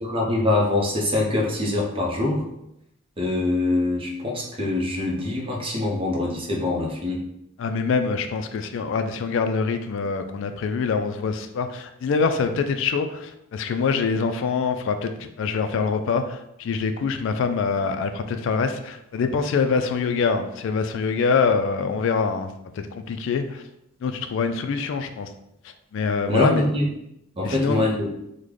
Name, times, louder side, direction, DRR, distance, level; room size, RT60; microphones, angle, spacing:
voice 1, 0.0-2.5 3.2-7.2 26.3-26.9 27.4-28.1, left 2 dB, 25° right, -1 dB, 0.6 m, -24 dB
voice 2, 7.6-23.6 24.0-25.3 25.9-26.7 27.4-27.9, left 5 dB, 60° left, 8 dB, 0.3 m, -25 dB
3.2 x 2.1 x 3.7 m, 0.81 s
head